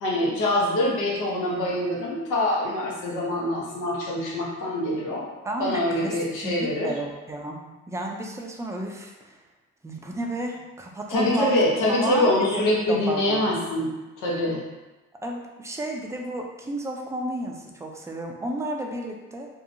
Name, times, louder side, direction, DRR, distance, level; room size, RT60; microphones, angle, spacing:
voice 1, 0.0-5.3 5.6-6.9 11.1-13.9 14.2-14.6, left 1 dB, 90° left, -3 dB, 0.8 m, -24 dB
voice 2, 5.4-6.2 6.4-9.4 9.8-13.5 15.2-19.5, right 1 dB, 10° right, 1 dB, 0.4 m, -32 dB
2.7 x 2.3 x 2.5 m, 1.1 s
cardioid pair, 90°, 30 cm